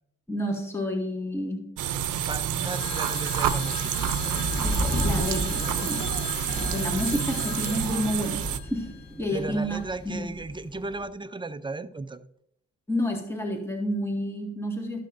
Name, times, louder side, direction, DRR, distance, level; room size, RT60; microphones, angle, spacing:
voice 1, 0.3-1.7 4.6-6.1 6.5-10.3 12.9-15.0, equal, 10° left, 1 dB, 1.8 m, -30 dB
sound 1, 1.8-8.6, right 10 dB, 80° right, 0.7 m, -29 dB
voice 2, 2.1-4.5 7.1-7.2 9.3-12.3, right 2 dB, 15° right, 11 dB, 0.5 m, -36 dB
Telephone, 2.6-9.4, left 7 dB, 75° left, 1.3 m, -38 dB
sound 2, 4.0-11.1, equal, 30° left, 1.9 m, -34 dB
13.5 x 6.5 x 2.6 m, 0.74 s
cardioid pair, 90°, 30 cm